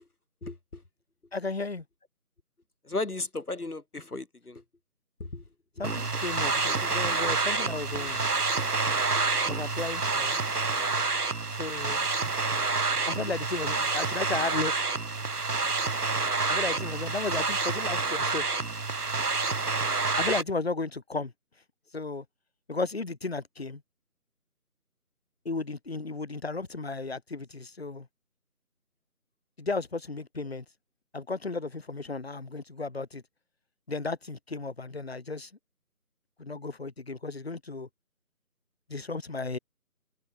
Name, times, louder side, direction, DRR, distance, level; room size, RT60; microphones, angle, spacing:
voice 1, 0.4-0.8 2.8-4.6 5.2-5.4 8.0-8.1 9.2-9.3, left 2 dB, 75° left, 3.0 m, -35 dB
voice 2, 1.3-1.8 5.8-8.2 9.4-10.4 11.6-12.1 13.1-14.9 16.5-18.6 20.2-21.3 21.9-22.2 22.7-23.8 25.4-28.1 29.6-30.6 31.1-33.2 33.9-35.5 36.4-37.9 38.9-39.6, left 3 dB, 40° left, 3.1 m, -34 dB
sound 1, 5.8-20.4, right 3 dB, 90° right, 1.4 m, -28 dB
figure-of-eight pair, 170°, 45 cm